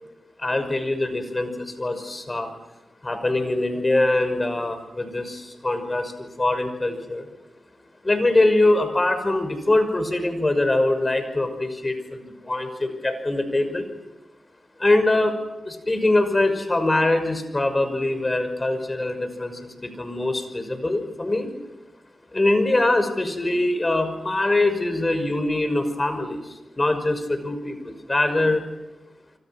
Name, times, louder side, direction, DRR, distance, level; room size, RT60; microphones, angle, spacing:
voice 1, 0.4-2.5 3.0-7.3 8.0-13.9 14.8-15.4 15.6-21.5 22.3-26.4 26.8-28.6, left 2 dB, 35° left, 8 dB, 6.0 m, -23 dB
27.5 x 25.5 x 6.2 m, 1.0 s
cardioid pair, 40°, 0 cm